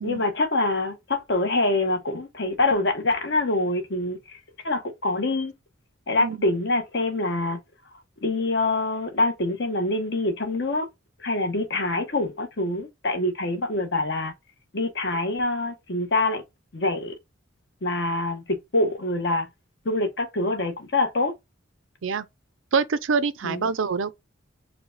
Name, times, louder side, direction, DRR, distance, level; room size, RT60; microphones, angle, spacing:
voice 1, 0.0-4.4 4.6-5.5 6.1-7.6 8.2-10.9 11.2-14.3 14.7-16.4 16.7-17.1 17.8-19.5 19.8-21.3 23.4-23.6, left 2 dB, 60° left, 1.1 m, -25 dB
voice 2, 22.7-24.1, right 5 dB, 80° right, 0.5 m, -25 dB
4.8 x 2.2 x 3.8 m
head